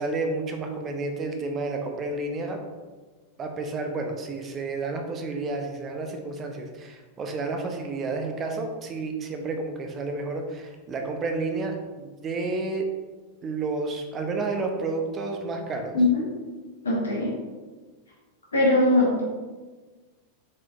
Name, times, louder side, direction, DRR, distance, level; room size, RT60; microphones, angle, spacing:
voice 1, 0.0-2.6 3.4-12.9 13.4-15.9, right 3 dB, 25° right, 4 dB, 0.5 m, -30 dB
voice 2, 16.8-17.3 18.5-19.2, left 2 dB, 70° left, -4 dB, 1.2 m, -21 dB
4.3 x 3.7 x 2.4 m, 1.3 s
figure-of-eight pair, 90°, 0 cm